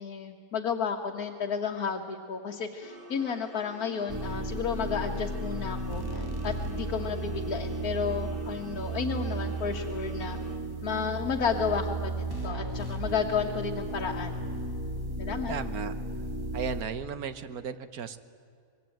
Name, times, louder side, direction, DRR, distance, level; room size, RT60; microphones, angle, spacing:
voice 1, 0.0-10.4 10.8-14.3 15.2-15.5, left 6 dB, 80° left, 1 dB, 1.7 m, -32 dB
sound 1, 2.8-10.6, right 2 dB, 35° right, 2.7 m, -47 dB
sound 2, 4.1-16.8, right 2 dB, 15° right, 1.9 m, -34 dB
voice 2, 15.5-15.9 16.5-18.2, right 6 dB, 85° right, 12 dB, 1.5 m, -35 dB
24.5 x 21.5 x 9.2 m, 2.2 s
omnidirectional pair, 1.5 m